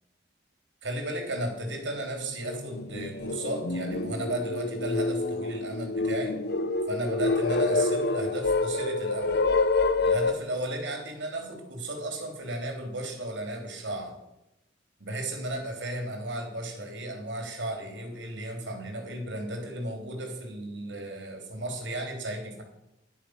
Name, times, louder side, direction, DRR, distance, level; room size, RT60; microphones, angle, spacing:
voice 1, 0.8-6.4 6.9-9.4 10.0-14.2 15.0-22.6, right 1 dB, 70° right, 3 dB, 3.6 m, -34 dB
sound 1, 1.7-1.8 2.3-10.3, left 3 dB, 60° left, 0.8 m, -27 dB
11.0 x 11.0 x 6.6 m, 0.88 s
head